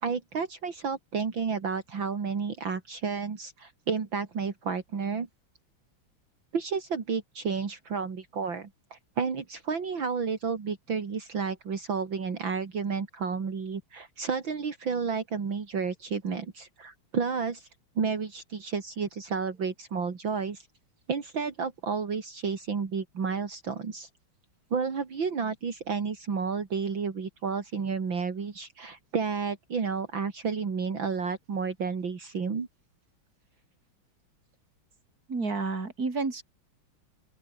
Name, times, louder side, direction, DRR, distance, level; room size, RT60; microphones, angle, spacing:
voice 1, 0.0-5.3 6.5-17.7 18.0-20.7 21.1-24.1 24.7-32.7, right 5 dB, 65° right, 3.4 m, -31 dB
voice 2, 35.3-36.4, right 3 dB, 45° right, 4.3 m, -30 dB
open air
omnidirectional pair, 2.3 m